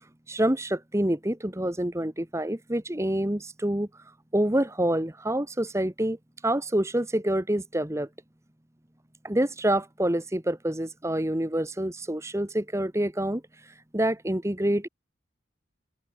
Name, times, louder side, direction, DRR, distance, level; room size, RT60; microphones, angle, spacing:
voice 1, 0.3-3.9 4.3-6.2 6.4-8.1 9.2-13.4 13.9-14.9, right 1 dB, 15° right, 1.2 m, -27 dB
head